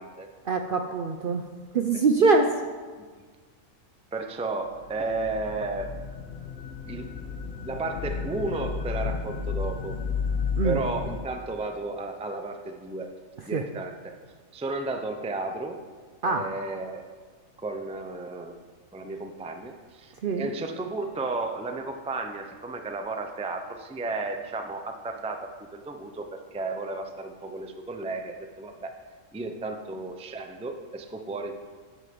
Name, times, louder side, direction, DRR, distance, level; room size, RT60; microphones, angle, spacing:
voice 1, 0.4-1.4 1.7-2.5 10.6-10.8 13.5-13.6 16.2-16.5 20.2-20.5, right 4 dB, 60° right, 4 dB, 0.6 m, -23 dB
voice 2, 4.1-6.0 6.9-7.1 7.6-10.0 10.6-13.1 13.5-14.1 14.5-15.8 16.2-17.0 17.6-18.6 18.9-20.1 20.4-28.9 29.3-31.5, right 3 dB, 10° right, 5 dB, 0.3 m, -33 dB
sound 1, 4.7-11.2, left 5 dB, 55° left, 1.1 m, -32 dB
9.8 x 8.3 x 5.3 m, 1.5 s
omnidirectional pair, 1.5 m